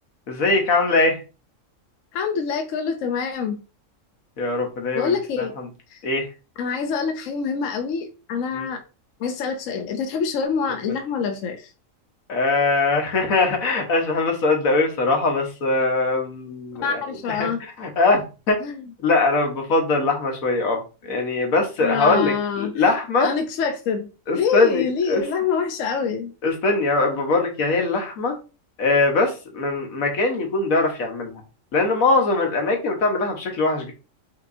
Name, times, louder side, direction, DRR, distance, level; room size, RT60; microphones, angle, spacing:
voice 1, 0.3-1.2 4.4-5.7 6.0-6.3 8.5-8.7 12.3-17.0 17.3-17.5 17.8-18.6 19.0-20.8 21.1-23.3 24.3-25.2 26.4-28.4 28.8-31.4 31.7-33.9, left 3 dB, 90° left, 1.5 m, -21 dB
voice 2, 2.1-3.6 4.9-5.5 5.9-6.0 6.6-8.8 9.2-11.7 16.8-17.6 18.6-18.8 21.8-22.8 23.2-24.1 24.3-26.3, left 6 dB, 75° left, 1.0 m, -25 dB
5.7 x 2.9 x 2.6 m
omnidirectional pair, 1.4 m